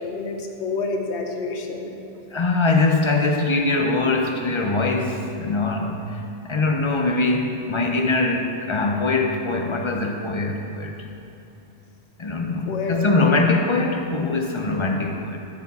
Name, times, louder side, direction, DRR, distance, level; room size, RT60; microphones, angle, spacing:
voice 1, 0.0-2.0 12.7-13.4, left 3 dB, 80° left, 3 dB, 1.1 m, -29 dB
voice 2, 2.3-10.9 12.2-15.4, left 3 dB, 45° left, 3 dB, 0.4 m, -22 dB
11.5 x 4.4 x 4.1 m, 2.9 s
omnidirectional pair, 1.1 m